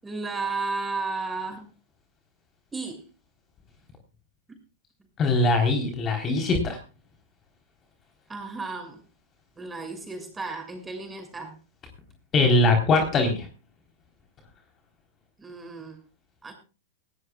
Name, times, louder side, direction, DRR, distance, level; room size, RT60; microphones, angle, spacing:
voice 1, 0.0-1.7 2.7-3.1 8.3-9.0 9.6-11.6 15.4-16.0 16.4-16.5, right 3 dB, 15° right, 5 dB, 6.3 m, -33 dB
voice 2, 5.2-6.8 12.3-13.5, left 2 dB, 30° left, 4 dB, 3.8 m, -21 dB
20.0 x 17.0 x 2.3 m, 0.33 s
hypercardioid pair, 105°, 0 cm